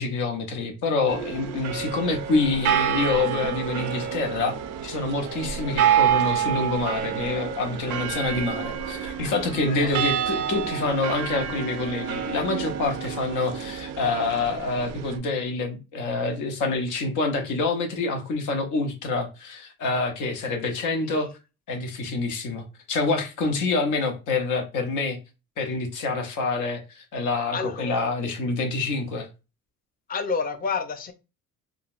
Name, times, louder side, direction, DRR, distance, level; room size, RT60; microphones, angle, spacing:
voice 1, 0.0-4.5 4.8-21.3 21.7-25.2 25.6-29.3, left 3 dB, 85° left, 0.9 m, -27 dB
sound 1, 1.1-15.2, right 9 dB, 90° right, 0.5 m, -28 dB
voice 2, 27.5-28.0 30.1-31.1, left 5 dB, 30° left, 0.5 m, -29 dB
3.8 x 2.3 x 2.4 m
cardioid pair, 90°, 30 cm